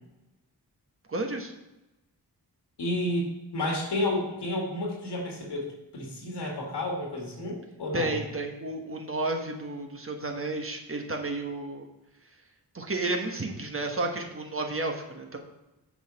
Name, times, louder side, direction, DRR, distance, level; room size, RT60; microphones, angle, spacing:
voice 1, 1.1-1.5 7.9-11.9 12.7-15.4, right 2 dB, 35° right, 2 dB, 1.2 m, -32 dB
voice 2, 2.8-3.3 3.5-5.7 5.9-8.2, left 1 dB, 85° left, -1 dB, 2.1 m, -31 dB
7.0 x 4.1 x 5.6 m, 1.0 s
cardioid pair, 50°, 40 cm